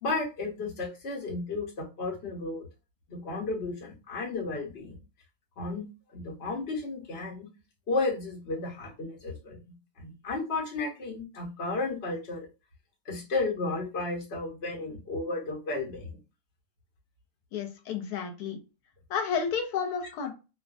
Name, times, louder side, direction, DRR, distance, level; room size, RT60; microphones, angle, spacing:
voice 1, 0.0-2.7 3.1-5.0 5.6-5.9 6.1-7.5 7.9-9.6 10.0-12.5 13.0-16.2, left 3 dB, 45° left, -1 dB, 1.1 m, -33 dB
voice 2, 17.5-18.6 19.1-20.3, left 6 dB, 85° left, 4 dB, 1.1 m, -31 dB
2.5 x 2.4 x 2.4 m, 0.30 s
omnidirectional pair, 1.6 m